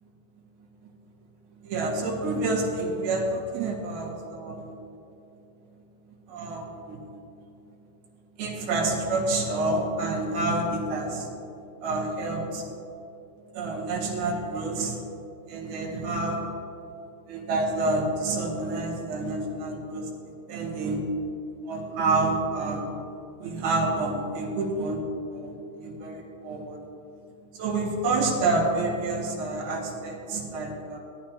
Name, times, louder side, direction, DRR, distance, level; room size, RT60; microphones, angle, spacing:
voice 1, 1.6-4.7 6.3-7.0 8.4-11.3 11.8-12.6 13.5-15.0 15.5-16.5 17.3-20.1 20.5-21.0 21.7-22.9 23.4-25.0 25.3-26.9 27.5-31.0, right 2 dB, 85° right, -2 dB, 3.7 m, -28 dB
18.0 x 11.5 x 2.9 m, 2.9 s
omnidirectional pair, 4.2 m